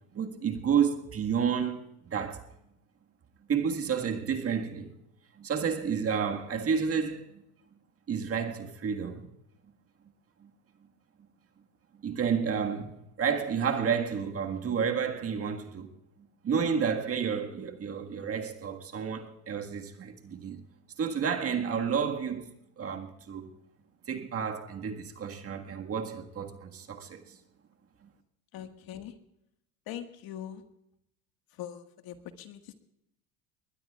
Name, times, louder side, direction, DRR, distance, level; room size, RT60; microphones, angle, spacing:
voice 1, 0.1-2.5 3.5-4.9 5.4-7.4 8.1-9.3 10.4-10.5 12.0-15.9 16.4-20.6 21.0-23.5 24.1-27.4, right 7 dB, 30° right, 1.7 m, -31 dB
voice 2, 28.5-29.1 29.9-30.6 31.6-32.7, left 10 dB, 55° left, 1.8 m, -42 dB
21.5 x 20.5 x 2.4 m
supercardioid pair, 110°, 44 cm